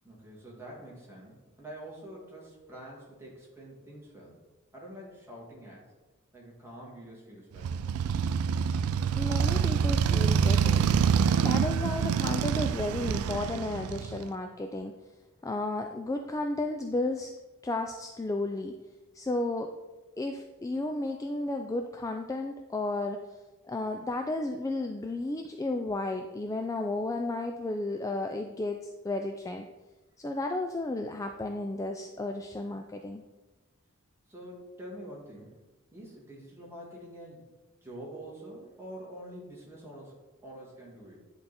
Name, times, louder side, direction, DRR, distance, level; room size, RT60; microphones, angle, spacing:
voice 1, 0.0-4.4 4.7-5.9 6.3-7.8 34.3-35.6 35.9-37.4 37.8-41.2, right 1 dB, 10° right, -5 dB, 2.1 m, -46 dB
Motorcycle, 7.6-14.3, right 7 dB, 80° right, 0.3 m, -26 dB
voice 2, 9.2-10.9 11.4-14.9 15.4-17.3 17.6-18.7 19.1-19.7 20.2-23.2 23.7-29.7 30.2-33.2, left 2 dB, 15° left, 4 dB, 0.3 m, -33 dB
10.0 x 3.9 x 4.2 m, 1.2 s
head